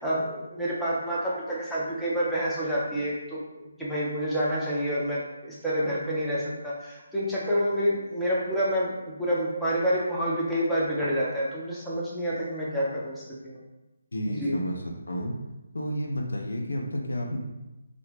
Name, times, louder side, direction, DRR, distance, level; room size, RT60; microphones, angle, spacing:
voice 1, 0.0-3.4 3.8-13.6 14.2-14.6, equal, ahead, -10 dB, 0.5 m, -28 dB
voice 2, 14.1-14.7 15.1-15.4 15.7-17.4, equal, 60° left, 1 dB, 0.4 m, -30 dB
2.8 x 2.0 x 3.1 m, 1.0 s
figure-of-eight pair, 145°, 0 cm